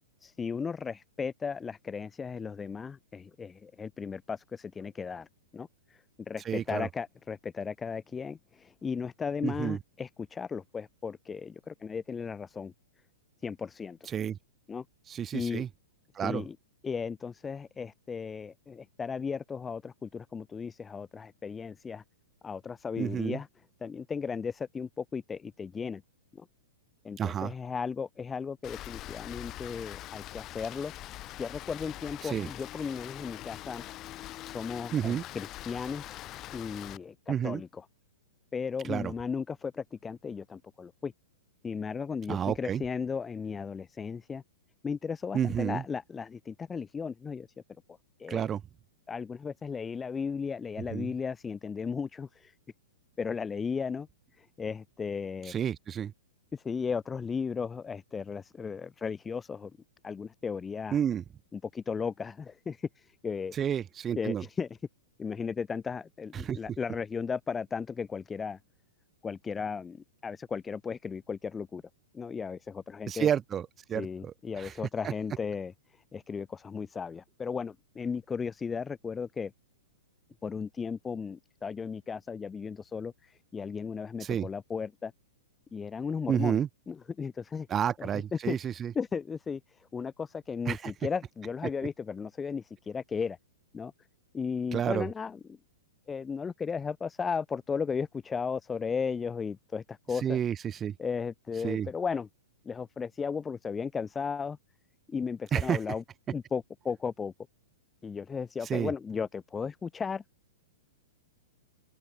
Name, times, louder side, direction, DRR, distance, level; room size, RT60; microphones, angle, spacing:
voice 1, 0.2-5.3 5.5-12.7 13.4-14.0 14.7-14.8 15.3-15.6 16.2-16.6 16.8-22.0 22.4-23.5 23.8-26.0 26.3-26.5 27.0-30.9 31.4-33.8 34.4-37.7 38.5-41.1 41.6-44.4 44.8-47.5 48.2-48.5 49.1-52.5 53.2-54.1 54.4-55.5 56.5-59.7 60.0-61.0 61.5-63.5 64.2-64.7 65.2-68.6 69.2-71.8 72.1-73.3 73.9-79.5 80.4-85.1 85.7-86.6 86.9-87.7 88.0-88.6 88.9-93.4 93.7-93.9 94.3-95.6 96.1-100.4 101.0-102.3 102.6-104.6 105.1-106.0 106.3-107.3 108.0-110.2, left 5 dB, 15° left, 0.9 m, -35 dB
voice 2, 6.5-6.9 9.4-9.8 14.1-14.4 15.1-15.7 16.1-16.4 23.0-23.4 27.2-27.5 32.2-32.5 34.9-35.2 37.3-37.6 38.8-39.1 42.3-42.8 45.3-45.8 48.3-48.6 50.9-51.1 55.5-56.1 60.9-61.2 63.5-64.4 66.3-66.6 73.1-74.7 75.0-75.1 84.2-84.5 86.3-86.7 87.7-88.9 90.7-90.9 94.7-95.1 100.2-101.0 101.6-101.9 105.5-105.8 108.7-108.9, right 9 dB, 20° right, 2.3 m, -30 dB
Rain, 28.6-37.0, left 15 dB, 30° left, 1.5 m, -43 dB
open air
figure-of-eight pair, 105°, 0 cm